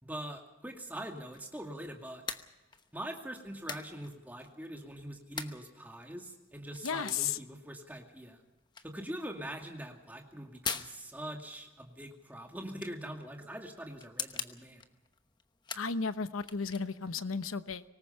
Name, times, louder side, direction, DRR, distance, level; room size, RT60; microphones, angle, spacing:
voice 1, 0.0-2.2 2.9-8.4 8.8-14.8, right 1 dB, 10° right, 2 dB, 2.2 m, -43 dB
sound 1, 0.8-17.2, left 5 dB, 20° left, 0.9 m, -46 dB
voice 2, 6.8-7.4 15.7-17.8, left 5 dB, 90° left, 12 dB, 0.9 m, -34 dB
24.5 x 19.5 x 5.6 m, 1.1 s
head